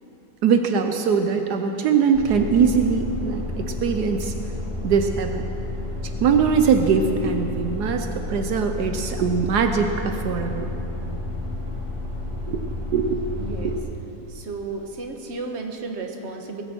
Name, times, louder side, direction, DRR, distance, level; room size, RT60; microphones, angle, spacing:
voice 1, 0.4-4.3 4.8-5.4 6.2-10.7 12.5-13.7, right 6 dB, 75° right, 6 dB, 1.3 m, -22 dB
sound 1, 2.1-13.8, left 2 dB, 15° left, 2.4 m, -31 dB
voice 2, 13.4-13.8 14.3-16.6, right 3 dB, 45° right, 3 dB, 1.5 m, -33 dB
19.0 x 16.5 x 4.5 m, 3.0 s
omnidirectional pair, 1.7 m